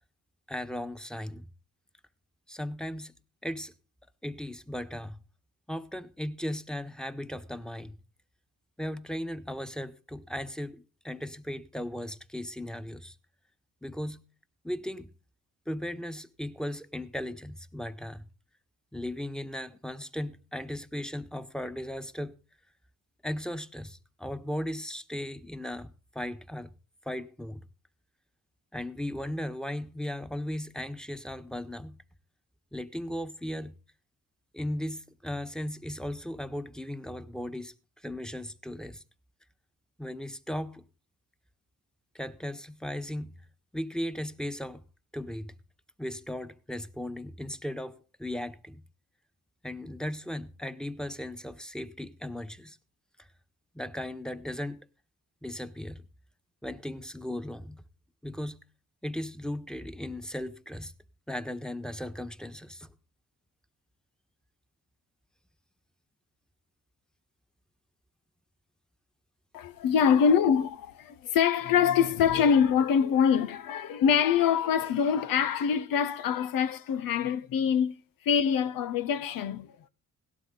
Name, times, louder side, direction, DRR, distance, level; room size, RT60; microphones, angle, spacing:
voice 1, 0.5-1.4 2.5-3.1 3.4-3.7 4.2-5.2 5.7-8.0 8.8-13.1 13.8-14.2 14.6-15.1 15.7-18.3 18.9-22.3 23.2-26.7 27.0-27.6 28.7-32.0 32.7-33.8 34.5-37.7 38.0-39.0 40.0-40.8 42.1-43.3 43.7-44.8 45.1-45.5 46.0-48.8 49.6-52.8 53.2-53.3 53.7-54.9 55.4-56.0 56.6-57.8 58.2-58.6 59.0-60.9 61.3-62.9, left 1 dB, ahead, 1.4 m, -37 dB
voice 2, 69.5-79.9, left 7 dB, 80° left, 0.9 m, -25 dB
17.0 x 12.5 x 3.9 m
cardioid pair, 70°, 34 cm